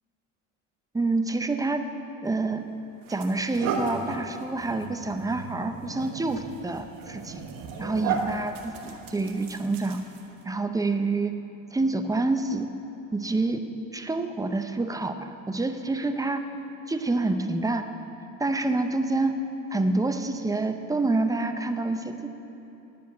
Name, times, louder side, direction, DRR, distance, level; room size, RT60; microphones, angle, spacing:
voice 1, 0.9-1.9 2.2-2.6 3.1-7.4 7.8-10.0 10.4-11.4 11.7-12.7 13.1-13.6 13.9-16.4 16.9-17.9 18.4-19.4 19.7-22.3, right 3 dB, 10° right, 7 dB, 0.6 m, -27 dB
sound 1, 2.3-2.4 3.0-10.4, right 5 dB, 65° right, 1.3 m, -35 dB
11.0 x 5.1 x 8.1 m, 3.0 s
supercardioid pair, 95°, 36 cm